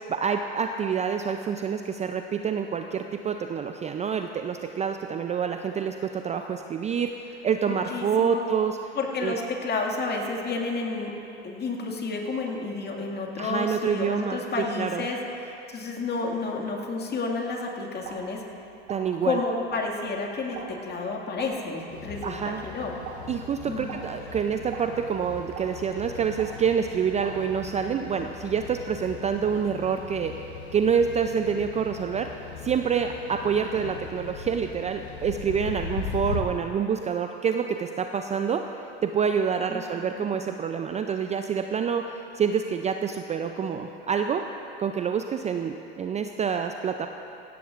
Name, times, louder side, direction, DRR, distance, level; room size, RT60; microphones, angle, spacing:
voice 1, 0.1-8.9 9.2-9.4 13.4-14.4 14.8-15.1 18.9-19.4 22.2-22.6 23.3-30.3 30.7-44.4 44.8-47.1, right 7 dB, 20° right, 6 dB, 0.4 m, -27 dB
voice 2, 7.6-8.5 9.0-11.1 11.4-18.4 19.2-22.9 23.7-24.0 39.7-40.3, left 3 dB, 30° left, 0 dB, 2.1 m, -31 dB
sound 1, 18.0-28.0, right 5 dB, 60° right, 2.5 m, -45 dB
silent street ambience handling noises, 21.9-36.4, left 5 dB, 85° left, 1.1 m, -39 dB
16.5 x 16.5 x 2.5 m, 2.8 s
hypercardioid pair, 90°, 32 cm